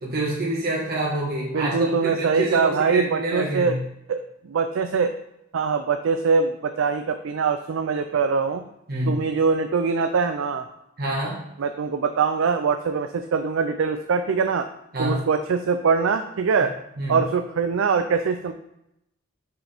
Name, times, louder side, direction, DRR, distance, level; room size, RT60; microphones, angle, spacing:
voice 1, 0.0-3.7 8.9-9.2 11.0-11.4 14.9-15.2 17.0-17.2, right 2 dB, 50° right, -5 dB, 1.4 m, -26 dB
voice 2, 1.5-3.8 4.1-5.1 5.5-8.6 9.1-10.7 11.6-14.7 15.0-16.7 17.1-18.5, right 5 dB, 75° right, 8 dB, 0.4 m, -23 dB
6.2 x 4.9 x 3.4 m, 0.84 s
head